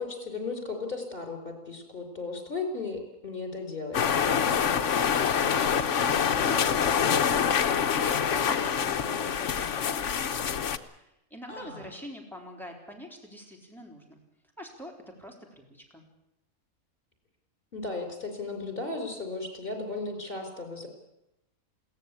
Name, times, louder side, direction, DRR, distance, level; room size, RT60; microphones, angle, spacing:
voice 1, 0.0-4.1 11.5-11.8 17.7-20.9, left 3 dB, 35° left, 4 dB, 4.9 m, -35 dB
sound 1, 3.9-10.8, left 7 dB, 60° left, 1.2 m, -26 dB
voice 2, 4.7-10.5 10.8-14.2 14.6-16.0, equal, ahead, 1 dB, 3.8 m, -45 dB
21.5 x 17.5 x 8.5 m, 0.88 s
omnidirectional pair, 1.5 m